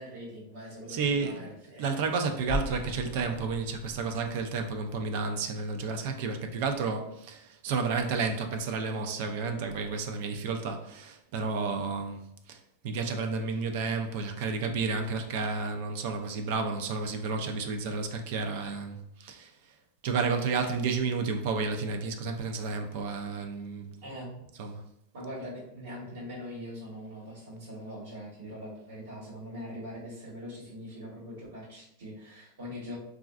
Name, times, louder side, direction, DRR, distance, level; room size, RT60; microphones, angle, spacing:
voice 1, 0.0-2.0 24.0-24.3 25.1-33.0, equal, 80° right, 1.2 m, -42 dB
voice 2, 0.9-1.4 1.8-19.7 20.0-23.9 24.6-24.8, right 4 dB, 60° right, 0.4 m, -31 dB
sound 1, 2.5-5.5, left 1 dB, 25° left, 0.6 m, -38 dB
3.1 x 2.4 x 2.4 m
supercardioid pair, 140°, 0 cm